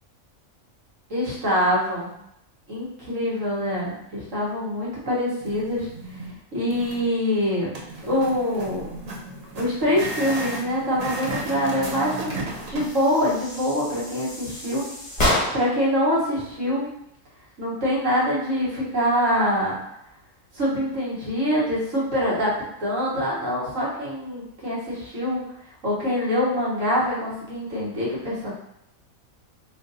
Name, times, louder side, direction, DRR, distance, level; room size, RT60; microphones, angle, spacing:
voice 1, 1.1-2.1 2.7-5.9 6.5-7.7 8.0-8.9 9.5-14.9 15.5-16.9 17.6-19.8 20.5-22.5 22.8-25.4 25.8-28.5, equal, 70° right, -6 dB, 1.6 m, -24 dB
sound 1, 5.4-6.3 6.7-7.1 7.7-12.9, right 2 dB, 50° right, 0.5 m, -34 dB
sound 2, 12.7-15.9, left 1 dB, 30° left, 1.1 m, -28 dB
3.2 x 2.5 x 3.9 m, 0.77 s
omnidirectional pair, 1.4 m